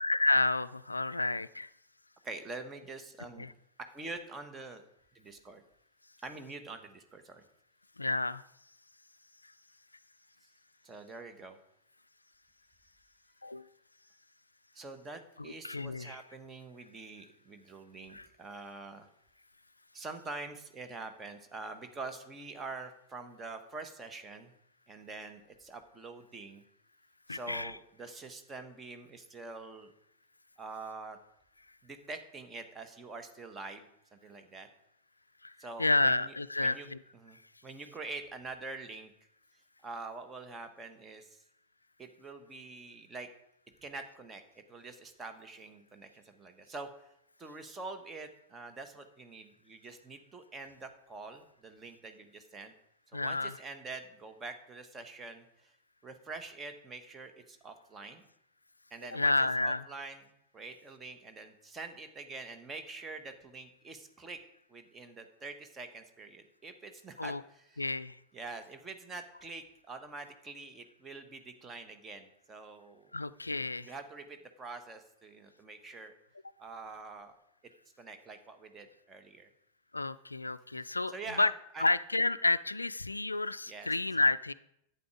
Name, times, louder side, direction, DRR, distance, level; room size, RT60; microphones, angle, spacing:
voice 1, 0.0-1.7 3.4-3.5 8.0-8.4 13.4-13.7 15.4-16.2 18.1-18.3 27.3-27.7 35.4-35.5 35.8-37.0 53.1-53.6 59.1-59.8 67.2-67.4 67.8-68.2 73.1-73.9 79.9-81.5 81.8-84.5, left 2 dB, 80° left, 17 dB, 0.3 m, -30 dB
voice 2, 2.2-3.5 3.9-4.8 5.1-5.6 6.2-7.4 10.8-11.6 14.7-19.1 19.9-24.5 24.9-26.6 27.3-29.9 30.6-31.2 31.8-34.7 35.6-36.9 37.1-39.1 39.8-41.4 42.0-43.3 43.8-44.4 44.7-47.1 47.4-52.7 53.1-55.7 56.0-58.2 58.9-64.4 64.7-67.9 68.3-73.1 73.8-76.1 76.6-77.3 78.0-79.5 80.8-81.9 83.7-83.9, right 3 dB, 20° right, 7 dB, 1.4 m, -45 dB
11.0 x 8.5 x 5.0 m, 0.78 s
figure-of-eight pair, 90°, 0 cm